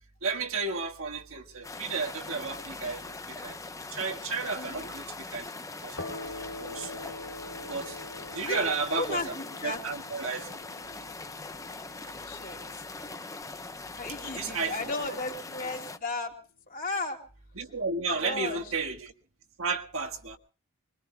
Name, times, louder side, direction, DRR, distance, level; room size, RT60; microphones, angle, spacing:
voice 1, 0.2-3.6 3.9-5.5 5.8-6.0 6.6-7.1 7.7-8.0 8.3-9.3 9.6-10.5 12.0-12.1 14.3-14.9 17.5-19.1 19.6-20.4, right 4 dB, 65° right, 4 dB, 1.6 m, -33 dB
sound 1, 1.6-16.0, left 3 dB, 15° left, 0.7 m, -41 dB
voice 2, 4.5-4.9 8.4-8.7 9.0-9.8 12.2-12.6 14.0-16.3 16.7-17.2 18.2-18.6, left 2 dB, 40° left, 1 dB, 3.0 m, -34 dB
sound 2, 6.0-13.4, left 2 dB, 70° left, 2.9 m, -45 dB
25.0 x 22.0 x 2.3 m, 0.35 s
head